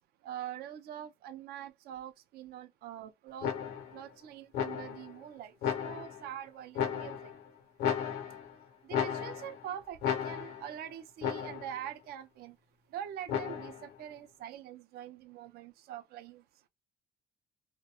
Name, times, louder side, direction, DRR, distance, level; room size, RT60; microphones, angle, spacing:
voice 1, 0.2-3.5 3.9-5.5 5.8-7.3 8.9-12.5 12.9-16.4, right 10 dB, 70° right, 0.4 m, -44 dB
sound 1, 3.4-4.0 4.5-5.1 5.6-6.3 6.8-7.4 7.8-8.6 8.9-9.6 10.0-10.7 11.2-11.8 13.3-13.9, left 8 dB, 75° left, 0.7 m, -34 dB
2.2 x 2.1 x 2.8 m
cardioid pair, 110°, 17 cm